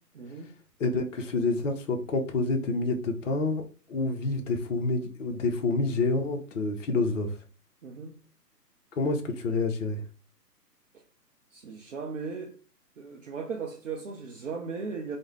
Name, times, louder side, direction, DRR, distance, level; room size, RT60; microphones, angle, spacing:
voice 1, 0.1-0.5 7.8-8.2 10.9-11.0 11.5-12.5 13.0-15.2, right 5 dB, 50° right, 0.5 m, -37 dB
voice 2, 0.8-7.4 9.0-10.0, left 3 dB, 50° left, 0.6 m, -28 dB
2.4 x 2.1 x 3.1 m
figure-of-eight pair, 145°, 49 cm